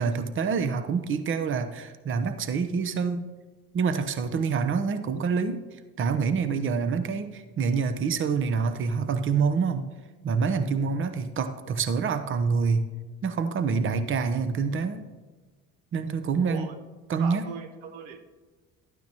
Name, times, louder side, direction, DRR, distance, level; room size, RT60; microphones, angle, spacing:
voice 1, 0.0-3.3 3.7-5.6 6.0-9.9 10.2-12.9 13.2-15.0 15.9-16.7 17.1-17.5, right 5 dB, 40° right, 10 dB, 0.8 m, -26 dB
voice 2, 16.4-16.7 17.2-18.3, right 7 dB, 85° right, 9 dB, 0.8 m, -39 dB
12.0 x 9.3 x 2.9 m, 1.3 s
supercardioid pair, 75°, 33 cm